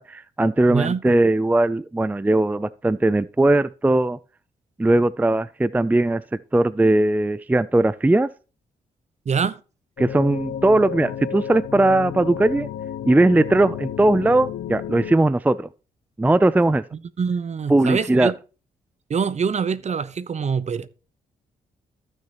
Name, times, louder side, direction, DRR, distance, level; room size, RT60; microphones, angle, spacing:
voice 1, 0.0-4.2 4.8-6.2 6.5-8.3 10.0-12.7 13.1-15.7 16.2-16.8 17.7-18.3, right 2 dB, 10° right, 0.4 m, -19 dB
voice 2, 0.7-1.0 9.3-9.6 17.2-18.3 19.1-20.9, right 6 dB, 45° right, 0.9 m, -24 dB
sound 1, 10.0-15.1, left 9 dB, 75° left, 0.8 m, -32 dB
14.5 x 6.4 x 3.0 m
supercardioid pair, 60°, 16 cm